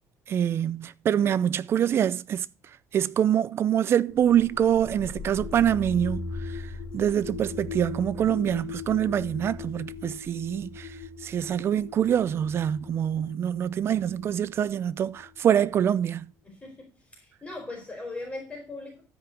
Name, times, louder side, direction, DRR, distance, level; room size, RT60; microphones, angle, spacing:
voice 1, 0.3-2.5 2.9-6.6 6.9-10.9 11.2-16.3, right 9 dB, 45° right, 0.5 m, -25 dB
sound 1, 4.1-15.9, left 4 dB, 80° left, 2.8 m, -40 dB
voice 2, 16.4-19.0, left 2 dB, 15° left, 3.9 m, -39 dB
13.0 x 5.1 x 6.2 m
cardioid pair, 135°, 6 cm